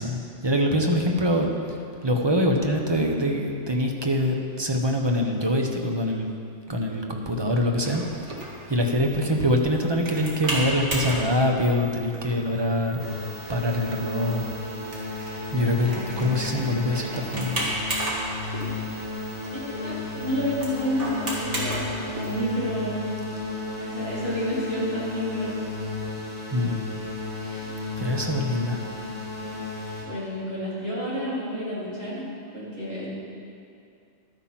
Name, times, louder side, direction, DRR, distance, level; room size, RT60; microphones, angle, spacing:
voice 1, 0.0-6.3 6.7-8.3 8.7-13.0 13.5-14.5 15.5-17.6 26.5-26.8 27.5-27.7 28.0-28.8, left 1 dB, 25° right, 2 dB, 1.0 m, -24 dB
sound 1, 7.8-22.5, right 1 dB, 80° right, 2.4 m, -35 dB
sound 2, 13.0-30.0, left 3 dB, 40° left, 2.8 m, -34 dB
voice 2, 15.8-16.1 16.4-16.6 18.6-18.8 19.5-23.1 23.8-25.6 27.4-27.7 28.6-28.7 29.4-29.6 30.0-32.3 32.5-33.1, equal, 60° right, -9 dB, 3.8 m, -30 dB
12.0 x 8.6 x 5.9 m, 2.5 s
omnidirectional pair, 1.2 m